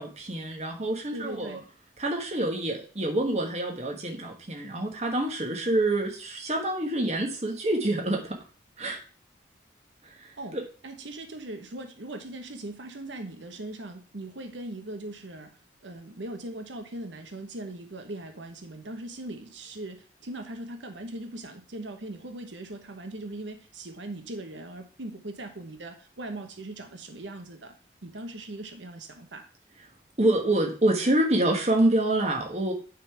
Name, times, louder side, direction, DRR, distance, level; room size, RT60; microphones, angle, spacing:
voice 1, 0.0-1.6 2.0-8.4 8.8-9.0 10.0-10.6 30.2-32.7, right 1 dB, 35° right, 1 dB, 1.4 m, -27 dB
voice 2, 1.1-1.6 10.4-10.6 10.8-27.8 28.0-29.5, right 1 dB, 85° right, 6 dB, 1.1 m, -40 dB
9.6 x 3.9 x 4.7 m, 0.39 s
head